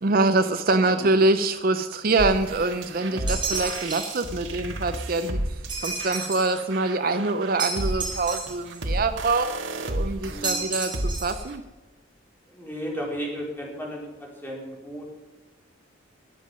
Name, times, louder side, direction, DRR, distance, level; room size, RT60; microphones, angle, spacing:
voice 1, 0.0-5.4 5.8-9.5 9.8-11.6, right 2 dB, 45° right, 10 dB, 0.6 m, -24 dB
sound 1, 2.2-11.6, right 1 dB, 75° right, 1.7 m, -32 dB
voice 2, 3.0-3.4 10.3-10.6 12.5-15.1, equal, 10° left, -2 dB, 3.8 m, -35 dB
sound 2, 3.3-4.3 5.7-6.6 7.6-8.8 10.4-11.4, right 4 dB, 25° right, 4.7 m, -31 dB
20.0 x 7.5 x 5.3 m, 1.2 s
head